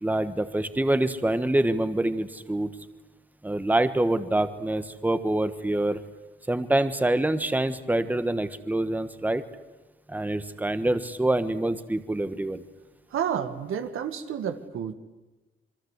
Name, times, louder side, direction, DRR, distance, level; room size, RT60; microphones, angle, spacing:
voice 1, 0.0-2.7 3.4-6.0 6.5-9.4 10.1-12.6, right 1 dB, 10° right, 11 dB, 1.3 m, -26 dB
voice 2, 13.1-14.9, right 8 dB, 80° right, 9 dB, 1.8 m, -30 dB
27.0 x 23.0 x 8.2 m, 1.1 s
cardioid pair, 95°, 21 cm